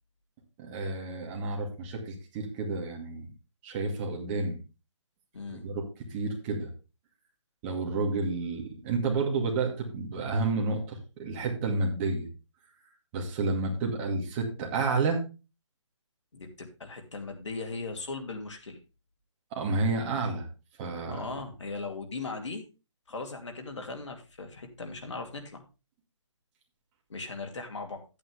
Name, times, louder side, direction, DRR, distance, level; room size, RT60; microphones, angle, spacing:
voice 1, 0.6-3.3 3.6-4.6 5.5-5.8 6.1-6.7 7.6-12.3 13.1-15.3 19.5-20.5 20.8-21.2, right 3 dB, 20° right, 1 dB, 2.2 m, -30 dB
voice 2, 5.3-5.6 16.3-18.8 21.1-22.7 23.1-25.6 27.1-28.0, left 3 dB, 70° left, 4 dB, 2.5 m, -38 dB
10.5 x 8.7 x 3.4 m, 0.30 s
hypercardioid pair, 155°, 16 cm